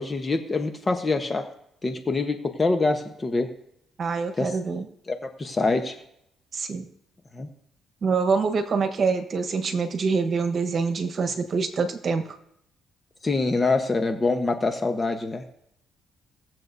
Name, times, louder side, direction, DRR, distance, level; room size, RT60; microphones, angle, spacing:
voice 1, 0.0-1.5 1.8-3.5 4.3-4.5 5.1-6.0 7.3-7.5 13.2-15.4, left 3 dB, 30° left, 6 dB, 1.0 m, -25 dB
voice 2, 4.0-4.9 6.5-6.9 8.0-12.4, right 4 dB, 50° right, 8 dB, 1.2 m, -25 dB
18.5 x 7.6 x 2.7 m, 0.73 s
cardioid pair, 90°, 0 cm